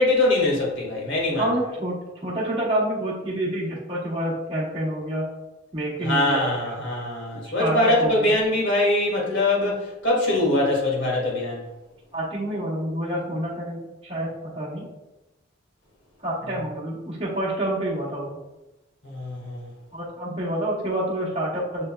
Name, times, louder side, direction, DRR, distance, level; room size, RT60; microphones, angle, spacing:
voice 1, 0.0-1.4 6.0-11.6 19.0-19.7, left 1 dB, 60° left, -2 dB, 1.6 m, -23 dB
voice 2, 1.4-5.3 5.7-6.8 7.6-8.3 12.1-14.9 16.2-18.4 19.9-21.9, right 1 dB, 30° right, -6 dB, 0.9 m, -28 dB
6.6 x 3.4 x 2.2 m, 0.99 s
head